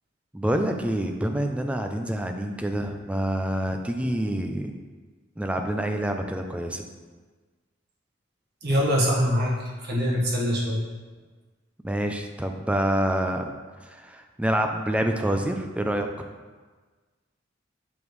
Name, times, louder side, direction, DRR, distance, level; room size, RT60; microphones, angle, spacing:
voice 1, 0.3-4.7 5.4-6.9 11.8-13.5 13.9-16.1, right 1 dB, 5° right, 4 dB, 0.4 m, -27 dB
voice 2, 8.6-10.8, equal, 55° right, -4 dB, 1.5 m, -24 dB
7.2 x 5.0 x 3.2 m, 1.4 s
head